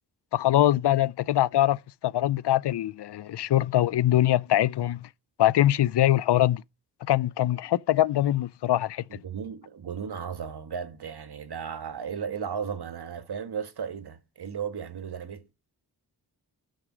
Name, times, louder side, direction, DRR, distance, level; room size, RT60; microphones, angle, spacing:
voice 1, 0.3-5.1 5.4-6.6 7.1-9.2, left 13 dB, 80° left, 0.6 m, -23 dB
voice 2, 9.1-15.5, right 7 dB, 70° right, 1.7 m, -35 dB
12.0 x 6.6 x 6.3 m
wide cardioid pair, 80°, 40 cm